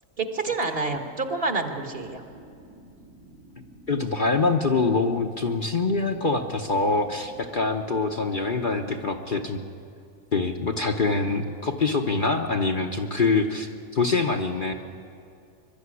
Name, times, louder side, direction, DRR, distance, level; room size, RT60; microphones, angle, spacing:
voice 1, 0.2-2.2, right 3 dB, 45° right, 5 dB, 1.6 m, -28 dB
sound 1, 1.9-9.4, right 1 dB, 80° right, 3.9 m, -50 dB
voice 2, 3.9-9.6 10.3-14.7, left 3 dB, 40° left, 3 dB, 1.0 m, -24 dB
22.5 x 12.0 x 9.7 m, 2.5 s
omnidirectional pair, 1.5 m